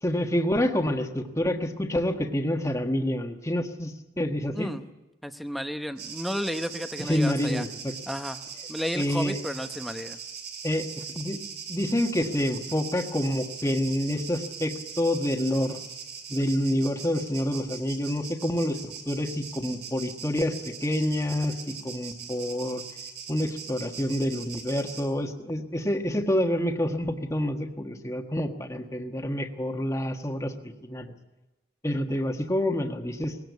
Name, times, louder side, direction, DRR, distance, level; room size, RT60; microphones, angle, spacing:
voice 1, 0.0-4.7 7.0-7.9 8.9-9.4 10.6-11.4 11.7-15.8 16.3-22.8 23.3-31.1 31.8-33.5, left 1 dB, 15° left, 4 dB, 1.5 m, -28 dB
voice 2, 5.2-7.6 8.1-8.4 8.7-10.2 28.7-28.9, equal, ahead, 8 dB, 0.9 m, -33 dB
sound 1, 6.0-25.1, right 6 dB, 75° right, 3.9 m, -41 dB
20.5 x 17.5 x 8.3 m, 0.98 s
head